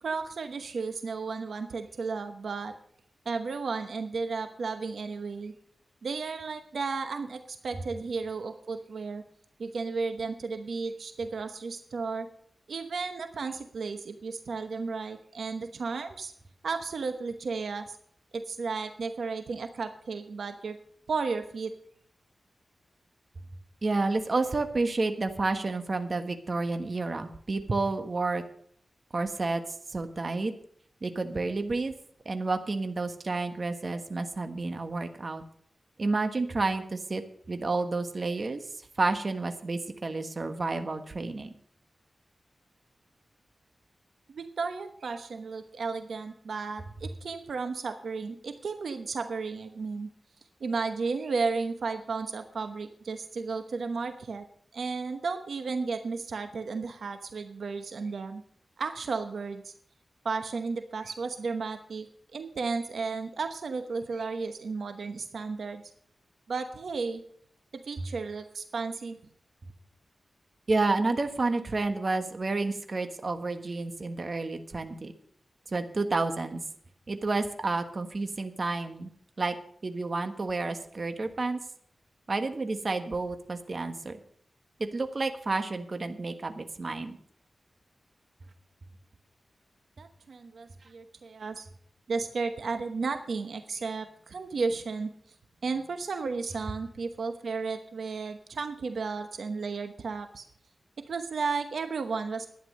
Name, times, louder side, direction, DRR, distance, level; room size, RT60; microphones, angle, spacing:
voice 1, 0.0-2.7 3.2-5.5 6.0-9.2 9.6-12.3 12.7-16.3 16.6-18.0 18.3-20.8 21.1-21.7 44.3-50.1 50.6-54.4 54.7-58.4 58.8-59.7 60.2-62.1 62.3-65.8 66.5-67.2 67.7-69.2 90.0-91.7 92.1-95.1 95.6-100.4 101.1-102.5, right 4 dB, 80° right, 8 dB, 1.0 m, -33 dB
voice 2, 23.8-28.4 29.1-29.6 29.9-30.5 31.0-31.9 32.2-35.4 36.0-37.2 37.5-38.6 39.0-41.5 70.7-75.1 75.7-76.6 77.1-79.1 79.4-79.6 79.8-81.6 82.3-84.2 84.9-87.2, right 3 dB, 45° right, 7 dB, 1.3 m, -30 dB
11.5 x 9.7 x 6.5 m, 0.62 s
wide cardioid pair, 100°, 0 cm